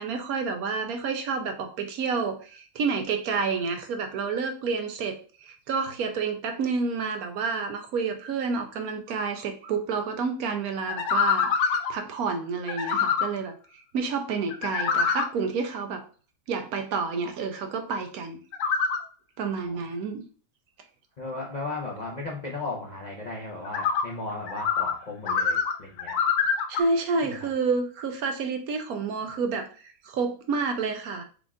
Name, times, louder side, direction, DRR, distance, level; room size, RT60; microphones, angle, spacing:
voice 1, 0.0-16.0 16.5-18.4 19.4-20.2 26.7-31.2, right 4 dB, 70° right, 5 dB, 1.0 m, -29 dB
sound 1, 10.9-11.9 12.7-13.3 14.5-15.3 18.5-19.0 23.7-24.0 24.5-25.0 25.3-26.8, left 6 dB, 70° left, 1.1 m, -25 dB
voice 2, 21.2-26.2 27.2-27.5, left 3 dB, 45° left, -3 dB, 0.5 m, -36 dB
5.1 x 2.4 x 3.6 m, 0.39 s
omnidirectional pair, 1.7 m